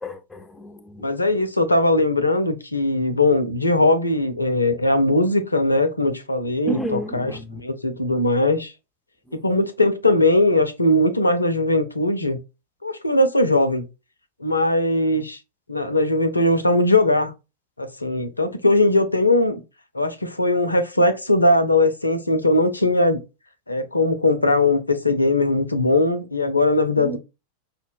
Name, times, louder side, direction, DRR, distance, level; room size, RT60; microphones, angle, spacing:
voice 1, 0.0-1.1 6.6-7.6 9.3-9.4 27.0-27.2, right 1 dB, 10° left, 0.5 m, -32 dB
voice 2, 1.0-8.7 9.3-12.4 12.8-13.8 14.4-15.4 15.7-17.3 17.8-19.6 19.9-23.2 23.7-27.2, left 2 dB, 85° left, 0.5 m, -20 dB
5.3 x 2.1 x 2.6 m
figure-of-eight pair, 90°, 0 cm